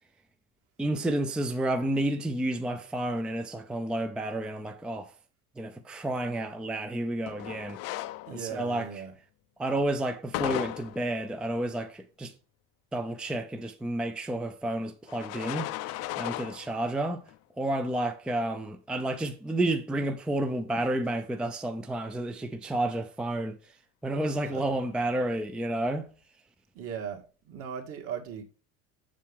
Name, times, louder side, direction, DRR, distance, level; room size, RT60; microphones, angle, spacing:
voice 1, 0.8-5.1 5.6-7.8 8.3-9.0 9.6-12.3 12.9-15.7 16.2-17.2 17.6-23.6 24.0-26.1, right 1 dB, 5° right, 0.4 m, -30 dB
sound 1, 7.3-8.7 10.3-11.2 15.1-16.9 17.3-17.4 18.3-18.4 24.2-25.3, left 15 dB, 55° left, 0.5 m, -36 dB
voice 2, 8.3-9.1 24.5-24.6 26.7-28.4, right 7 dB, 50° right, 1.9 m, -38 dB
7.4 x 7.0 x 3.5 m
cardioid pair, 165°, 31 cm